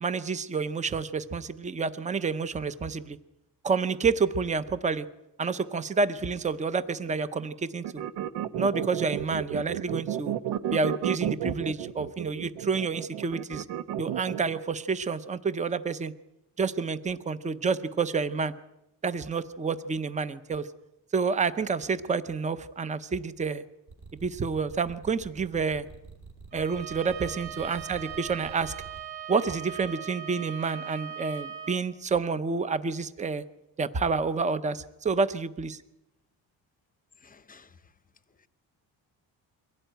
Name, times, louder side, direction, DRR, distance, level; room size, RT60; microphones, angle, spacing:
voice 1, 0.0-3.2 3.6-5.0 5.4-8.0 8.6-10.3 10.7-13.7 14.0-16.1 16.6-18.5 19.0-20.7 21.1-23.6 24.1-25.9 26.5-28.7 29.3-33.4 33.8-35.8, right 4 dB, 15° right, 13 dB, 0.7 m, -29 dB
sound 1, 7.8-14.6, right 10 dB, 85° right, 1.1 m, -32 dB
sound 2, 23.9-29.0, right 4 dB, 45° right, 2.8 m, -47 dB
Bowed string instrument, 26.5-31.8, right 9 dB, 65° right, 3.2 m, -40 dB
voice 2, 37.2-37.9 38.4-38.5, left 4 dB, 20° left, 13 dB, 0.8 m, -54 dB
23.5 x 16.5 x 9.1 m, 0.91 s
cardioid pair, 170°, 41 cm